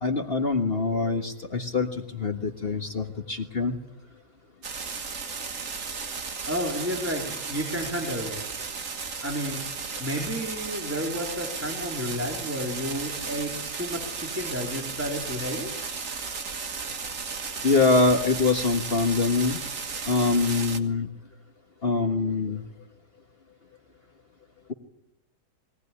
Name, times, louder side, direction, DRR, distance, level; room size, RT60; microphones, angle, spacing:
voice 1, 0.0-3.8 17.6-19.6 20.1-21.1 21.8-22.7, left 3 dB, 40° left, 5 dB, 1.6 m, -24 dB
sound 1, 4.6-20.8, right 5 dB, 55° right, 1.9 m, -35 dB
voice 2, 6.5-8.4 9.2-15.7, equal, 10° right, 0 dB, 3.7 m, -31 dB
22.0 x 18.0 x 9.9 m, 0.84 s
omnidirectional pair, 1.7 m